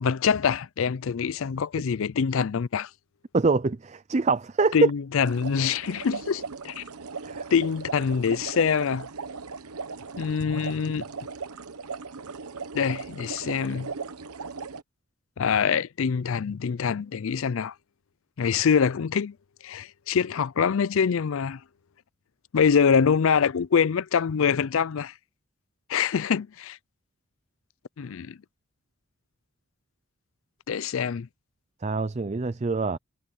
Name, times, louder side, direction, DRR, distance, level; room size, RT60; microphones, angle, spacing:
voice 1, 0.0-2.9 4.7-6.8 7.5-9.1 10.2-11.0 12.7-13.9 15.4-17.7 18.4-19.3 19.6-21.6 22.5-25.1 25.9-26.8 28.0-28.4 30.7-31.3, left 6 dB, 65° left, 0.4 m, -25 dB
voice 2, 3.3-4.8 7.2-7.4 31.8-33.0, right 4 dB, 30° right, 0.4 m, -25 dB
sound 1, 5.2-14.8, right 4 dB, 85° right, 1.0 m, -38 dB
head